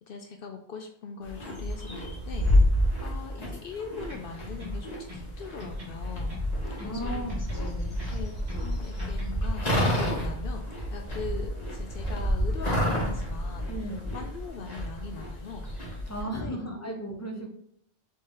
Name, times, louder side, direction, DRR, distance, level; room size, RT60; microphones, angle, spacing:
voice 1, 0.0-6.3 6.7-7.4 8.1-13.7 14.1-15.6 16.2-16.9, left 5 dB, 60° left, 5 dB, 0.7 m, -41 dB
sound 1, 1.2-16.2, equal, 35° left, 1.3 m, -29 dB
sound 2, 4.1-5.3 5.6-7.0 7.3-8.7 9.0-10.4, left 3 dB, 30° right, 1.4 m, -45 dB
voice 2, 6.8-8.0 13.7-14.1 16.1-17.5, right 1 dB, 15° left, 1 dB, 0.6 m, -36 dB
4.2 x 3.1 x 3.8 m, 0.71 s
omnidirectional pair, 1.1 m